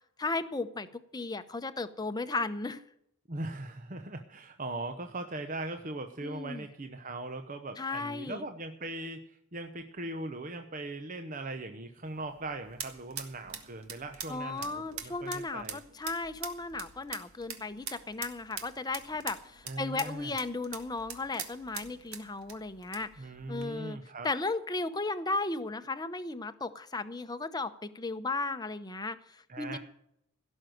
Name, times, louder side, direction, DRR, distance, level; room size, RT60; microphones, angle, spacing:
voice 1, 0.2-0.9 1.1-2.8 6.2-6.6 7.8-8.4 14.3-24.0 24.2-29.8, left 3 dB, 20° left, 10 dB, 0.8 m, -35 dB
voice 2, 3.3-15.8 19.6-20.3 23.2-24.3 29.5-29.8, right 2 dB, 40° right, 6 dB, 0.9 m, -40 dB
sound 1, 12.0-23.7, right 8 dB, 85° right, 1.8 m, -45 dB
17.0 x 6.4 x 9.2 m, 0.75 s
head